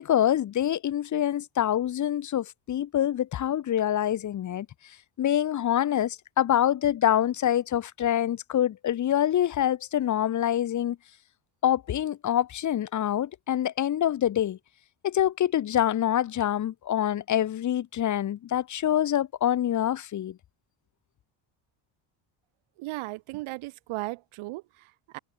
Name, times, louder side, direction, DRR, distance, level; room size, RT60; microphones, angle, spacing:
voice 1, 0.0-4.7 5.2-11.0 11.6-14.6 15.0-20.4, left 11 dB, 40° left, 1.6 m, -25 dB
voice 2, 22.8-25.2, right 20 dB, 90° right, 7.8 m, -36 dB
cardioid pair, 170°, 48 cm